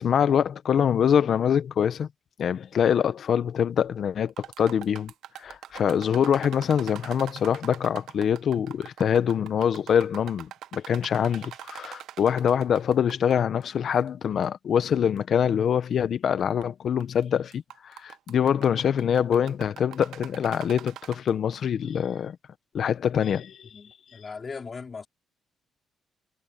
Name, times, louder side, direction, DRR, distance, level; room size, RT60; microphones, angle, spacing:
voice 1, 0.0-2.1 2.4-4.3 4.6-5.1 5.4-22.4 22.7-23.7, left 8 dB, 60° left, 1.2 m, -24 dB
sound 1, 4.3-13.3 13.6-13.7 14.4-14.5 15.2-15.3 16.4-16.6 17.0-17.2 17.5-21.6, right 11 dB, 80° right, 1.3 m, -43 dB
voice 2, 23.7-25.1, left 5 dB, 35° left, 4.2 m, -39 dB
cardioid pair, 90°, 0 cm